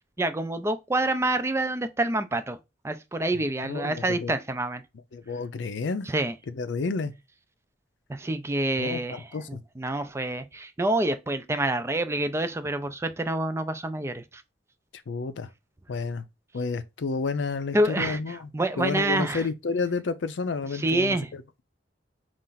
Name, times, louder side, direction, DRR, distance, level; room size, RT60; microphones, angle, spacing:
voice 1, 0.2-2.6 2.8-4.8 6.1-6.3 8.2-14.2 17.7-19.4 20.7-21.3, right 2 dB, 15° right, 0.4 m, -27 dB
voice 2, 3.3-4.3 5.1-6.1 6.5-7.1 8.8-9.6 15.1-15.5 15.9-16.3 16.5-18.5 18.8-21.6, left 4 dB, 85° left, 0.5 m, -31 dB
4.2 x 2.5 x 3.8 m
head